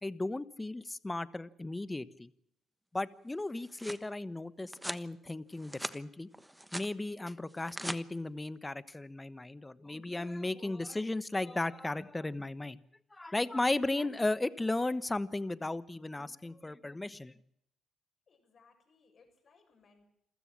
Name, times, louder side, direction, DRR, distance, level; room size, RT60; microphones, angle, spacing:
voice 1, 0.0-2.3 2.9-6.3 6.7-12.8 13.1-17.4, left 2 dB, 15° left, 15 dB, 1.2 m, -35 dB
sound 1, 3.4-4.1 4.7-5.1 5.5-6.0 6.3-6.9 7.5-8.0, right 1 dB, 5° right, 1.2 m, -41 dB
voice 2, 18.3-20.1, left 4 dB, 50° left, 5 dB, 7.3 m, -65 dB
28.0 x 15.0 x 7.5 m, 0.77 s
cardioid pair, 90°, 0 cm